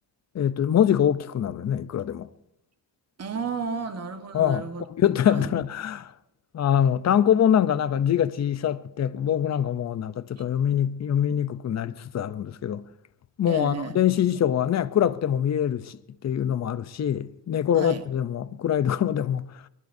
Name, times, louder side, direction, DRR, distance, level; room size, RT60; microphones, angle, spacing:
voice 1, 0.3-2.3 4.3-4.6 4.9-6.1 6.5-12.8 13.4-16.0 16.2-19.4, left 9 dB, 40° left, 0.6 m, -24 dB
voice 2, 3.2-4.8 5.3-5.5 13.5-14.0 17.7-18.0, right 5 dB, 35° right, 1.4 m, -32 dB
23.5 x 22.5 x 2.7 m
cardioid pair, 125°, 44 cm